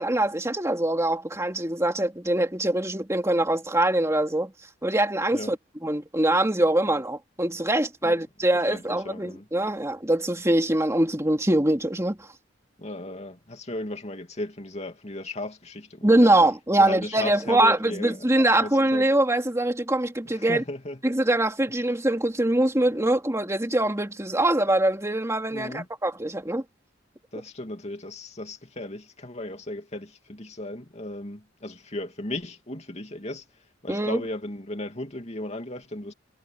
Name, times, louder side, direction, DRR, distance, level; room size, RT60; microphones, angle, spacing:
voice 1, 0.0-4.5 4.8-5.6 5.8-12.3 16.0-20.6 21.0-26.6 33.9-34.2, right 1 dB, 15° right, 2.7 m, -23 dB
voice 2, 8.7-9.4 12.8-16.3 16.8-19.1 20.3-21.0 25.5-25.9 27.3-33.4 33.8-36.1, left 1 dB, 35° left, 2.7 m, -36 dB
head